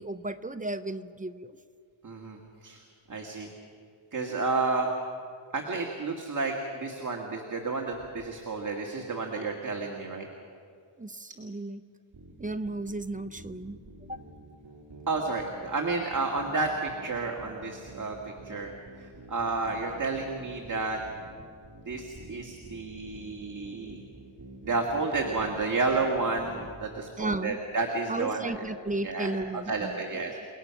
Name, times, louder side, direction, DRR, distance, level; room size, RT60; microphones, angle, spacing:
voice 1, 0.0-1.6 11.0-11.8 12.4-13.8 14.1-14.2 27.2-27.6 28.1-30.3, right 2 dB, 15° right, 10 dB, 0.6 m, -34 dB
voice 2, 2.0-2.8 3.1-3.5 4.1-4.9 5.5-10.3 15.1-18.2 18.4-18.7 19.0-21.0 21.9-24.0 24.6-28.4 29.0-29.4 29.7-30.3, right 3 dB, 35° right, 1 dB, 1.9 m, -31 dB
sound 1, 12.1-26.9, right 2 dB, 55° right, 2.8 m, -48 dB
29.5 x 19.5 x 5.8 m, 2.2 s
wide cardioid pair, 145°, 50 cm